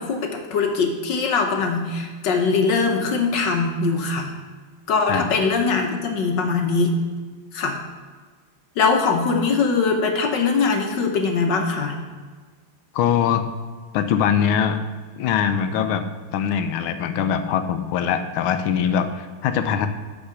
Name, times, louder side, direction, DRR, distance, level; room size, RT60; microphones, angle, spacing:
voice 1, 0.0-4.3 4.9-7.0 7.5-7.8 8.8-12.0, left 4 dB, 65° left, 3 dB, 1.4 m, -21 dB
voice 2, 12.9-13.5 13.9-14.8 15.1-16.0 16.3-19.9, left 8 dB, 80° left, 9 dB, 1.5 m, -22 dB
8.8 x 4.8 x 6.8 m, 1.4 s
omnidirectional pair, 2.3 m